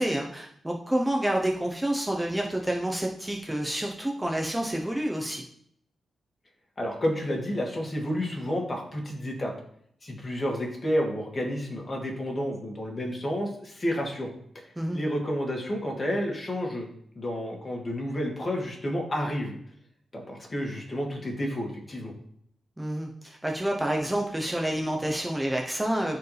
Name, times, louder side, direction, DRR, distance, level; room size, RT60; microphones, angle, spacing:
voice 1, 0.0-5.4 14.8-15.0 22.8-26.2, right 1 dB, 10° right, 0 dB, 1.0 m, -28 dB
voice 2, 6.8-9.5 10.0-16.9 17.2-19.6 20.1-22.1, equal, 30° left, 0 dB, 2.4 m, -30 dB
13.5 x 4.7 x 3.5 m, 0.68 s
cardioid pair, 100°, 0 cm